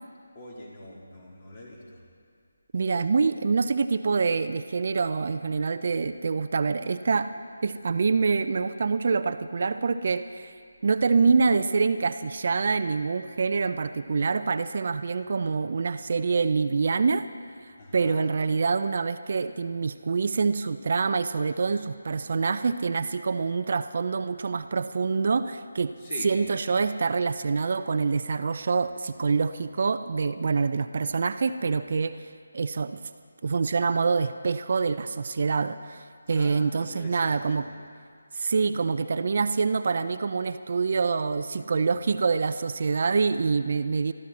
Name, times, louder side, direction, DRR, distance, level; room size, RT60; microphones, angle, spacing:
voice 1, 0.4-1.8 17.8-18.2 26.0-26.3 36.3-37.4, left 2 dB, 35° left, -3 dB, 3.5 m, -43 dB
voice 2, 2.7-7.3 7.6-10.5 10.8-17.2 17.9-25.9 26.2-32.3 32.5-33.0 33.4-37.7 38.3-44.1, right 4 dB, 50° right, 11 dB, 0.5 m, -26 dB
23.5 x 13.0 x 4.2 m, 2.2 s
figure-of-eight pair, 155°, 0 cm